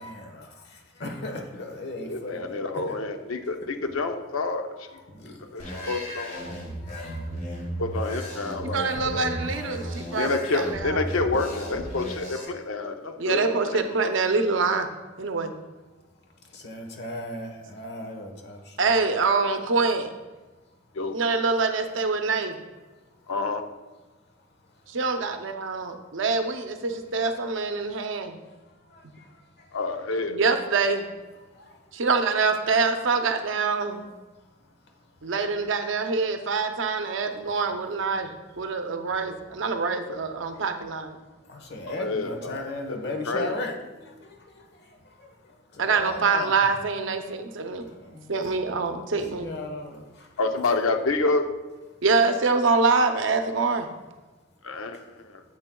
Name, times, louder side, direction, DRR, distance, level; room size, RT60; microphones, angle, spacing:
voice 1, 0.0-3.0 4.9-5.8 6.8-7.3 7.5-7.8 9.1-9.5 16.4-18.9 23.2-23.3 24.7-24.9 28.5-29.8 31.4-32.0 33.7-34.1 34.4-36.2 37.0-37.6 38.7-38.8 40.5-40.6 41.4-46.7 47.7-48.9 49.3-50.4 54.9-55.1, left 1 dB, 55° left, 3 dB, 1.1 m, -39 dB
voice 2, 2.0-4.9 5.5-6.6 7.8-9.4 10.2-13.8 20.9-21.1 23.3-23.6 29.7-30.4 41.9-43.5 50.4-51.5 54.6-55.4, left 3 dB, 90° left, 6 dB, 0.7 m, -28 dB
sound 1, 5.6-12.4, equal, 40° left, 1.8 m, -35 dB
voice 3, 8.6-11.0 13.2-14.9 15.2-15.5 18.8-20.1 21.1-22.6 24.9-28.4 29.0-29.1 30.3-31.1 31.9-34.0 35.2-38.3 38.6-41.2 45.8-47.8 48.3-49.5 52.0-53.9, right 4 dB, 65° right, 6 dB, 0.6 m, -25 dB
9.7 x 7.7 x 2.3 m, 1.2 s
head